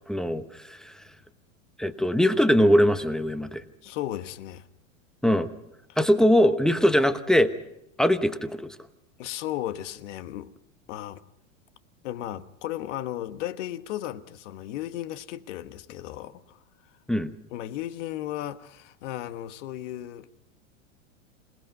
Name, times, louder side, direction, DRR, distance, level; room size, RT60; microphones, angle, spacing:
voice 1, 0.1-1.0 1.8-3.6 5.2-5.5 6.0-7.5 8.0-8.8 17.1-17.3, equal, ahead, 1.0 m, -21 dB
voice 2, 3.8-4.7 9.2-10.5 10.9-11.2 12.0-16.6 17.5-20.3, left 13 dB, 65° left, 1.3 m, -35 dB
27.5 x 18.0 x 5.3 m
hypercardioid pair, 120°, 38 cm